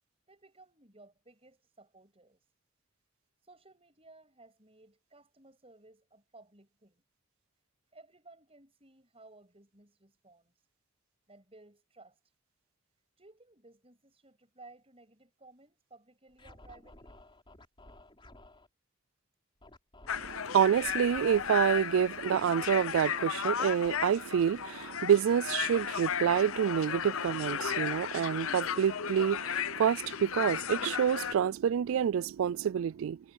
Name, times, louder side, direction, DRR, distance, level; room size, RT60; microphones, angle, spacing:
voice 1, 0.3-2.4 3.4-7.0 7.9-10.5 11.3-12.2 13.2-17.2, right 2 dB, 30° right, 7.6 m, -58 dB
Scratching (performance technique), 16.3-18.7 19.6-23.9, left 1 dB, 25° left, 4.1 m, -56 dB
sound 1, 20.1-31.3, left 8 dB, 85° left, 0.7 m, -35 dB
voice 2, 20.1-33.2, right 8 dB, 80° right, 0.3 m, -28 dB
head